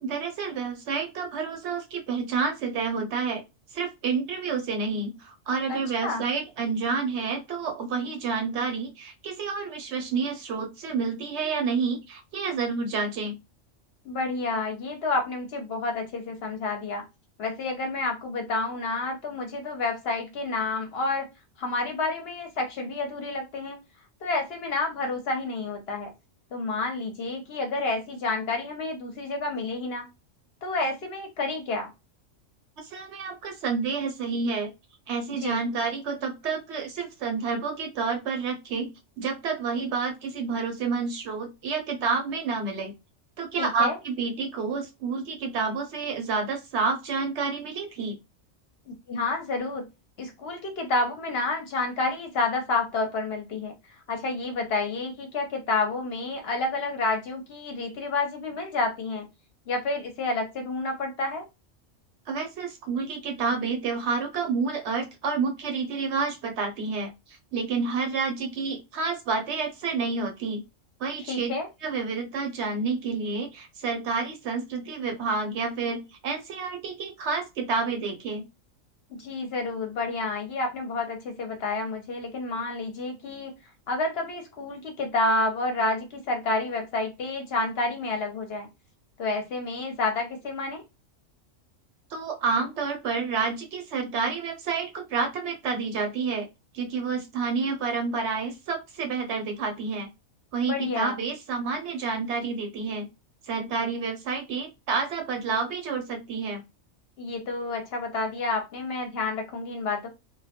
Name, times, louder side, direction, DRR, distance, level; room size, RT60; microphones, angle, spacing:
voice 1, 0.0-3.4 3.7-13.4 32.8-34.7 35.1-38.9 39.2-42.9 43.4-48.2 62.3-70.6 71.0-71.5 71.8-78.5 92.1-96.5 96.7-100.1 100.5-103.1 103.5-106.6, right 4 dB, 65° right, 3 dB, 0.8 m, -29 dB
voice 2, 5.7-6.2 14.0-17.0 17.4-21.3 21.6-23.8 24.2-26.1 26.5-30.1 30.6-31.9 35.4-35.6 43.6-44.0 48.9-49.8 50.2-53.7 54.1-59.3 59.7-61.4 71.3-71.7 79.1-83.5 83.9-88.7 89.2-90.8 100.6-101.2 107.2-110.1, left 3 dB, 60° left, 4 dB, 0.7 m, -29 dB
2.2 x 2.1 x 2.7 m, 0.24 s
omnidirectional pair, 1.3 m